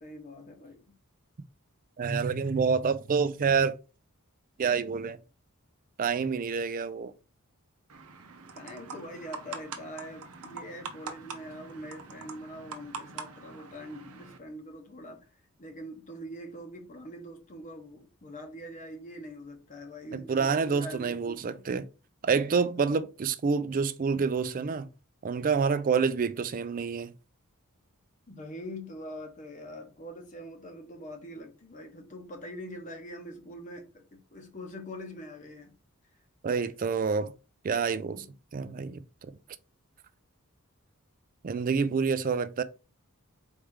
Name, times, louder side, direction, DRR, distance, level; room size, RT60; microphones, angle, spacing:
voice 1, 0.0-0.8 8.6-15.3 15.6-21.6 22.8-23.0 28.3-35.7 36.6-36.7 38.1-38.2, equal, 35° left, 0.8 m, -43 dB
voice 2, 2.0-3.8 4.6-5.2 6.0-7.1 20.1-21.8 22.2-24.9 25.2-27.1 36.4-37.3 37.6-38.2 38.5-39.0 41.4-42.6, right 5 dB, 40° right, 0.4 m, -27 dB
sound 1, 7.9-14.4, right 4 dB, 90° right, 0.8 m, -44 dB
4.4 x 3.2 x 3.7 m
head